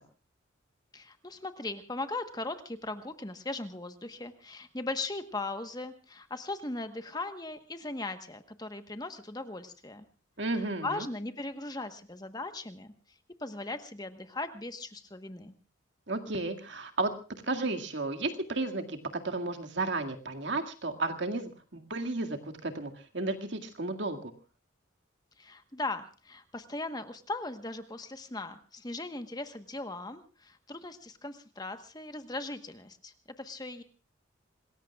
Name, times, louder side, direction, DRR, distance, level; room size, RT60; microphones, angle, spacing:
voice 1, 0.9-10.0 10.5-12.9 13.4-15.5 25.4-33.8, left 2 dB, 20° left, 9 dB, 1.2 m, -38 dB
voice 2, 10.4-11.1 16.1-17.1 17.5-19.0 19.2-24.3, right 2 dB, 60° right, 4 dB, 2.0 m, -33 dB
26.5 x 20.0 x 2.4 m, 0.35 s
head